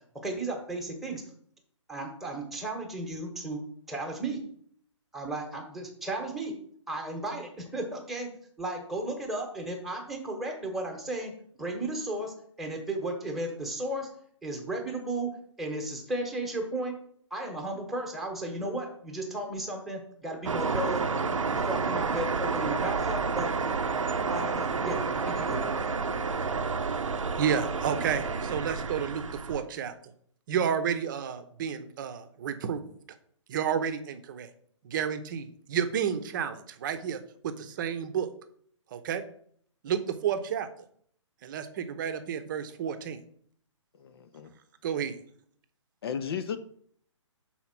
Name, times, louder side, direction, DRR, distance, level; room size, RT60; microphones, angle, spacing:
voice 1, 0.2-1.2 1.9-3.6 3.9-4.4 5.1-6.5 6.9-8.3 8.6-11.3 11.6-14.1 14.4-15.3 15.6-16.9 17.3-21.1 21.5-23.5 24.3-25.7, right 1 dB, ahead, 1.2 m, -34 dB
sound 1, 20.4-29.6, right 4 dB, 80° right, 0.7 m, -30 dB
voice 2, 27.4-29.2 29.5-29.9 30.5-32.8 33.5-34.5 34.8-38.3 38.9-39.2 39.8-40.7 41.4-43.2 44.8-45.2, right 8 dB, 40° right, 0.8 m, -31 dB
voice 3, 44.0-44.5 46.0-46.6, left 7 dB, 50° left, 0.6 m, -34 dB
5.8 x 4.2 x 5.9 m
figure-of-eight pair, 135°, 16 cm